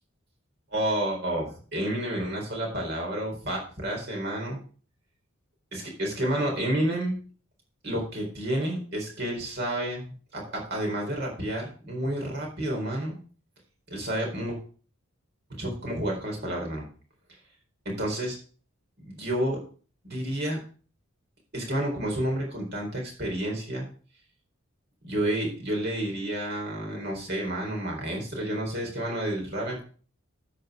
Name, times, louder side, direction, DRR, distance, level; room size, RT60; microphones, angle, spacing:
voice 1, 0.7-4.6 5.7-7.2 7.8-13.2 13.9-14.6 15.6-16.9 18.0-18.4 19.0-19.6 20.0-20.6 21.5-23.8 25.0-29.8, right 1 dB, 50° right, -1 dB, 4.1 m, -30 dB
13.0 x 4.7 x 4.9 m, 0.40 s
head